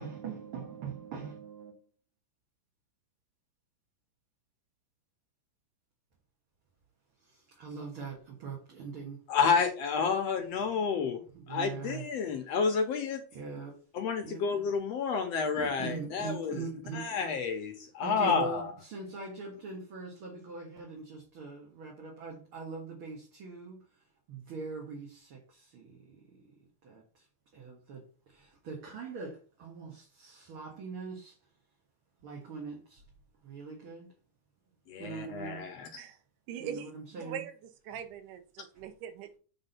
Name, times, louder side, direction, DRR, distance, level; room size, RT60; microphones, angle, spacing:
voice 1, 0.0-1.8 7.2-9.2 11.3-12.1 13.3-13.8 14.2-14.4 15.5-17.1 18.0-23.8 24.3-26.5 26.8-27.2 27.5-28.0 28.3-31.4 32.2-33.0 33.4-34.1 35.0-35.6 36.6-37.4, right 4 dB, 50° right, 2.2 m, -42 dB
voice 2, 9.3-11.2 11.5-13.2 13.9-16.6 16.9-18.7 34.9-35.9, left 5 dB, 65° left, 1.8 m, -30 dB
voice 3, 36.5-37.6 37.8-39.4, right 8 dB, 75° right, 2.5 m, -42 dB
8.0 x 3.8 x 5.7 m
omnidirectional pair, 3.8 m